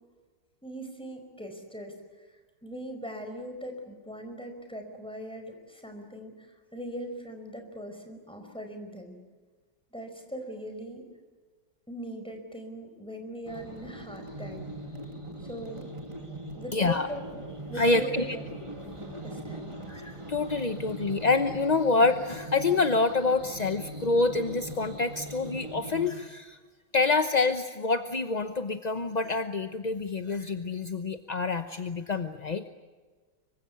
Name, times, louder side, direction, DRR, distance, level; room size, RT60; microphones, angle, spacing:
voice 1, 0.6-1.9 2.3-9.1 9.9-11.0 11.9-14.7 15.4-15.9 16.5-17.4 17.7-18.5 18.8-19.7, equal, 5° left, 4 dB, 4.9 m, -40 dB
sound 1, 13.4-26.1, right 1 dB, 15° right, 2.5 m, -41 dB
voice 2, 16.7-17.1 17.8-18.4 19.9-26.6 26.9-32.7, left 3 dB, 35° left, 8 dB, 0.7 m, -27 dB
25.5 x 24.0 x 8.4 m, 1.4 s
omnidirectional pair, 2.0 m